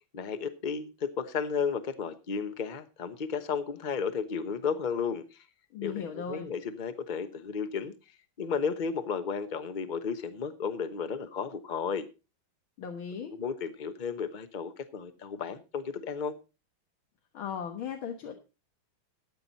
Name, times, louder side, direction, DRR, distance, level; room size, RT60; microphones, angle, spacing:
voice 1, 0.1-5.4 5.8-7.9 8.4-12.1 13.2-16.3, left 6 dB, 35° left, 10 dB, 0.8 m, -33 dB
voice 2, 5.7-6.5 12.8-13.3 17.3-18.4, left 7 dB, 75° left, 3 dB, 2.1 m, -37 dB
13.5 x 9.0 x 4.1 m, 0.31 s
omnidirectional pair, 2.2 m